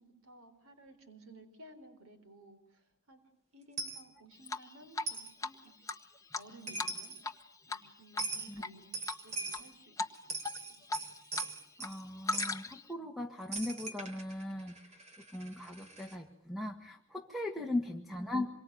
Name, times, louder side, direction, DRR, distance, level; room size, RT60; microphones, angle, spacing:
voice 1, 0.0-3.2 3.5-5.9 6.3-7.2 7.7-8.9 9.2-10.4 10.7-10.9, right 1 dB, 80° right, 9 dB, 4.0 m, -56 dB
Coin (dropping), 3.8-4.0 5.1-5.3 6.4-6.5 6.7-7.2 8.2-8.5 8.9-9.7 10.1-12.0 12.3-12.6 13.5-16.2, right 3 dB, 35° right, 3.7 m, -41 dB
Drip, 4.5-5.1 5.4-5.5 5.9-7.4 7.7-7.9 8.1-8.7 9.1-9.6 10.0-10.1 10.4-11.5 11.8-12.9, left 3 dB, 15° left, 1.2 m, -37 dB
voice 2, 11.8-14.8 15.3-18.5, left 1 dB, ahead, 4 dB, 1.8 m, -38 dB
27.0 x 24.0 x 9.3 m, 0.69 s
head